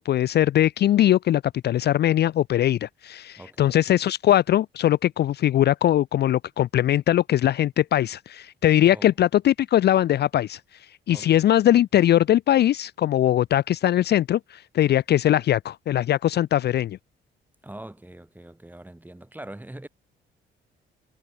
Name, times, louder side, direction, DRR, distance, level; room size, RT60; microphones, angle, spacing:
voice 1, 0.0-10.6 11.1-17.0, left 12 dB, 55° left, 0.5 m, -21 dB
voice 2, 3.4-3.7 8.8-9.1 11.1-11.4 17.6-19.9, right 1 dB, 10° right, 4.6 m, -42 dB
cardioid pair, 90°, 20 cm